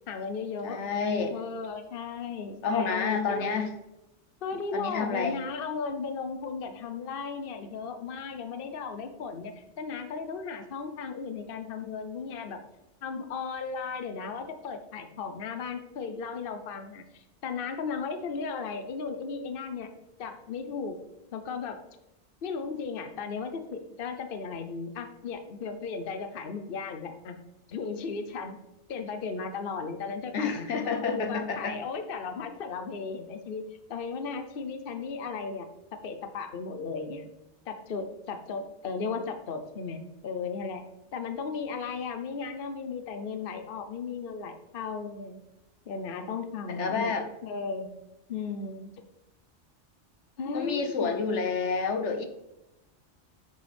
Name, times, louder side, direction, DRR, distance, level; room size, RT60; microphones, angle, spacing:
voice 1, 0.1-0.8 1.3-3.7 4.4-12.6 13.0-19.9 20.2-21.0 21.3-21.8 22.4-27.4 27.7-28.6 28.9-33.6 33.9-35.7 36.0-37.3 37.7-40.8 41.1-45.4 45.9-47.1 47.4-47.9 48.3-48.9 50.4-51.1, left 5 dB, 55° left, 7 dB, 1.0 m, -35 dB
voice 2, 0.6-1.4 2.6-3.7 4.7-5.4 30.3-31.8 46.7-47.3 50.5-52.3, left 5 dB, 80° left, 5 dB, 1.3 m, -29 dB
10.5 x 6.5 x 3.5 m, 0.94 s
omnidirectional pair, 1.2 m